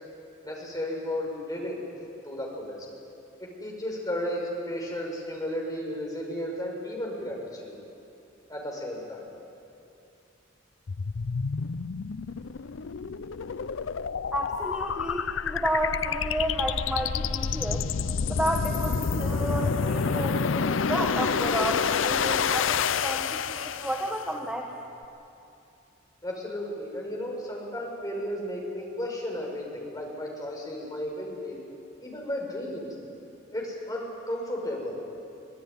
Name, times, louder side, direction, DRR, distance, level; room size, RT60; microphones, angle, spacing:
voice 1, 0.4-1.8 2.2-2.9 3.4-7.8 8.5-9.3 26.2-31.6 32.0-32.9 33.5-35.0, left 1 dB, 20° left, -1 dB, 5.5 m, -34 dB
sound 1, 10.9-24.3, left 6 dB, 90° left, 0.6 m, -28 dB
voice 2, 14.3-17.9 18.3-24.7, right 1 dB, 5° right, -1 dB, 1.5 m, -31 dB
24.5 x 18.5 x 9.7 m, 2.7 s
head